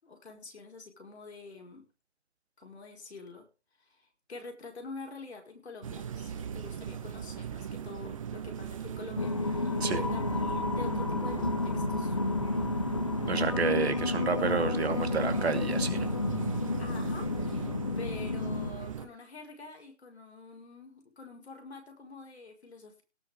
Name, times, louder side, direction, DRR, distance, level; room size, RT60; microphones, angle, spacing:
voice 1, 0.0-1.9 2.6-3.5 3.8-12.2 16.8-23.0, left 3 dB, 65° left, 4 dB, 5.3 m, -47 dB
sound 1, 5.8-19.1, right 8 dB, 30° right, 1.4 m, -38 dB
sound 2, 9.2-18.7, left 3 dB, 30° left, 0.5 m, -31 dB
voice 2, 13.3-16.1, right 5 dB, 65° right, 9 dB, 2.4 m, -30 dB
18.0 x 6.3 x 5.3 m, 0.33 s
hypercardioid pair, 165°, 34 cm